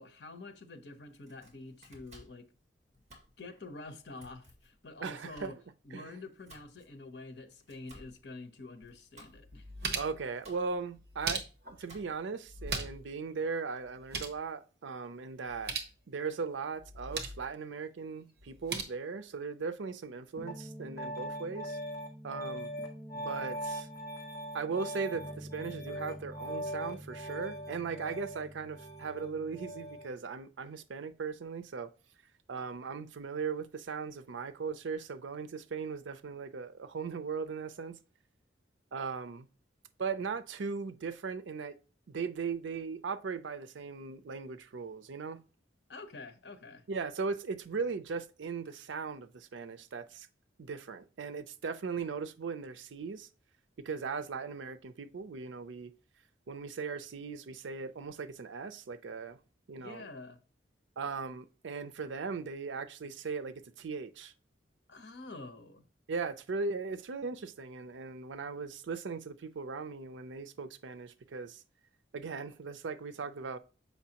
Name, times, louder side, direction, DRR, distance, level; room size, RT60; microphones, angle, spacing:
voice 1, 0.0-2.4 3.4-5.6 5.8-9.7 45.9-46.8 59.8-60.4 64.9-65.8, left 2 dB, 65° left, 0.9 m, -47 dB
Domestic sounds home sounds, 1.1-12.4, equal, 35° right, 2.1 m, -59 dB
voice 2, 5.0-5.6 5.9-6.2 9.9-11.4 11.7-15.7 16.1-21.8 22.2-22.7 23.1-23.9 24.5-31.9 32.5-38.0 38.9-39.5 40.0-41.8 42.1-45.4 46.9-50.3 50.6-53.3 53.8-55.9 56.5-59.4 59.7-60.1 61.0-64.3 66.1-71.6 72.1-73.6, right 5 dB, 85° right, 0.5 m, -38 dB
sound 1, 8.8-8.9 9.4-10.3 11.0-11.8 12.5-13.1 13.4-13.5 13.8-14.4 15.5-15.9 16.8-17.5 18.4-18.8, right 4 dB, 55° right, 1.1 m, -38 dB
Piano, 20.4-30.1, equal, 15° left, 1.5 m, -41 dB
7.2 x 5.5 x 2.9 m
head